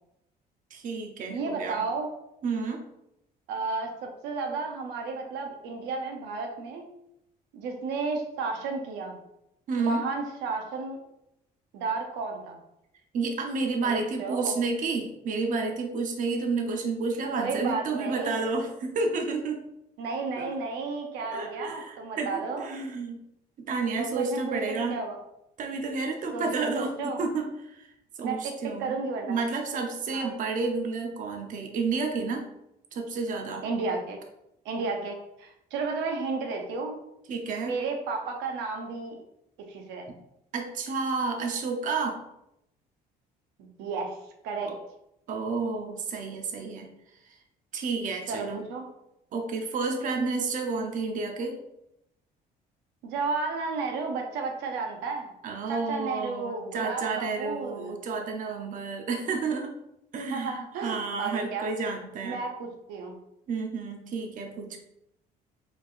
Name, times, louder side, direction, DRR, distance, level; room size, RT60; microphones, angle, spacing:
voice 1, 0.7-1.8 2.4-2.8 9.7-10.1 13.1-19.6 20.4-20.5 21.2-23.2 23.6-25.0 25.6-27.9 28.2-32.5 32.9-33.6 37.3-37.7 40.5-42.2 44.6-44.8 45.3-46.9 47.2-47.4 47.7-48.7 49.3-51.6 55.4-59.7 60.1-62.4 63.5-64.8, right 4 dB, 50° right, 3 dB, 0.7 m, -31 dB
voice 2, 1.3-2.1 3.5-6.9 7.5-9.2 9.8-11.0 11.7-12.6 13.8-14.6 17.3-18.4 20.0-22.7 24.0-25.2 26.3-27.2 28.2-28.5 28.8-29.4 30.1-30.3 33.6-34.2 34.6-37.0 37.6-39.2 39.7-40.1 43.6-44.2 44.4-44.7 48.3-48.9 53.0-55.3 55.7-57.9 60.3-61.7 62.2-63.1, right 4 dB, 90° right, 3 dB, 0.7 m, -32 dB
4.4 x 3.4 x 2.5 m, 0.83 s
cardioid pair, 110°, 17 cm